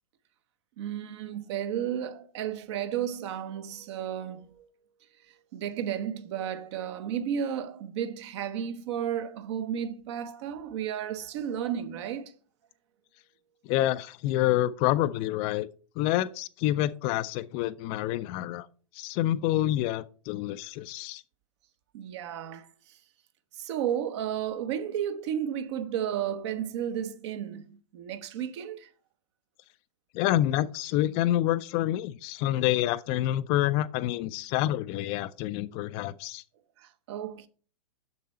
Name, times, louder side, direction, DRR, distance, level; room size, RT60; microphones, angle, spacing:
voice 1, 0.8-4.7 5.5-12.3 21.9-22.7 23.6-28.9 36.8-37.5, right 9 dB, 50° right, 0.8 m, -33 dB
voice 2, 13.7-15.7 16.0-18.7 19.0-21.2 30.1-36.4, left 14 dB, 30° left, 0.3 m, -27 dB
6.7 x 6.7 x 4.2 m
figure-of-eight pair, 105°, 18 cm